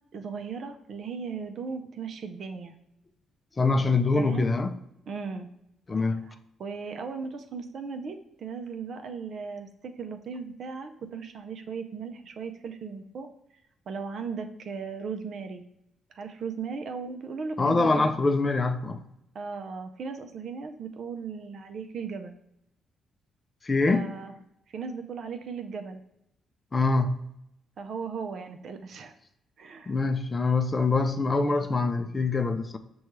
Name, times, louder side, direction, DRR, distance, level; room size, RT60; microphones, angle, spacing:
voice 1, 0.1-2.7 4.1-4.5 5.1-5.5 6.6-13.3 13.9-15.6 16.1-18.1 19.3-22.3 23.9-24.3 24.7-26.0 27.8-29.1 29.6-29.9, right 5 dB, 60° right, 0.5 m, -37 dB
voice 2, 3.6-4.8 5.9-6.3 17.6-19.0 23.6-24.2 26.7-27.3 29.9-32.8, left 3 dB, 35° left, 0.4 m, -24 dB
6.3 x 2.3 x 3.0 m
supercardioid pair, 55°, 0 cm